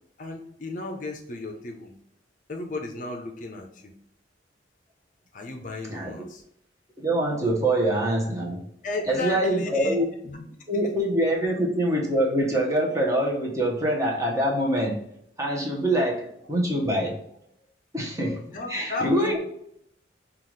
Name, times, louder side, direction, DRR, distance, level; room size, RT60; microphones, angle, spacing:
voice 1, 0.2-1.9 2.5-3.9 5.3-6.4 8.8-10.5 10.8-10.9 18.5-19.4, left 2 dB, 45° left, 3 dB, 0.5 m, -34 dB
voice 2, 7.0-8.6 9.1-10.1 10.7-15.0 15.4-17.2 17.9-18.4 18.7-19.4, right 1 dB, 15° right, -2 dB, 0.9 m, -24 dB
5.6 x 2.4 x 3.1 m, 0.73 s
head